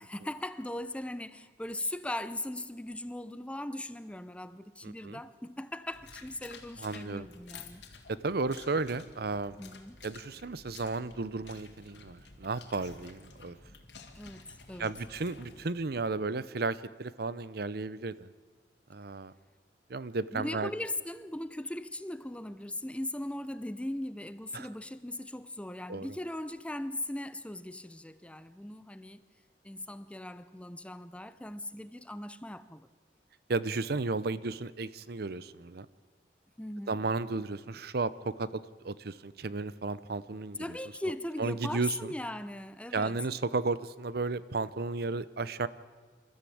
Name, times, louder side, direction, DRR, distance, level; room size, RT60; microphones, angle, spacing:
voice 1, 0.0-7.8 9.6-10.0 14.1-15.0 20.3-29.2 29.6-32.9 36.6-37.0 40.6-43.2, left 1 dB, 5° left, 0.7 m, -39 dB
voice 2, 4.8-5.2 6.8-7.3 8.2-9.6 10.0-13.6 14.8-18.3 18.9-19.3 19.9-20.7 24.5-24.7 25.9-26.1 33.5-35.9 36.9-38.5 38.8-40.6 41.4-42.1 42.9-45.7, right 3 dB, 60° right, 0.7 m, -33 dB
sound 1, 5.9-15.7, left 4 dB, 80° left, 2.6 m, -52 dB
26.5 x 13.5 x 8.6 m
head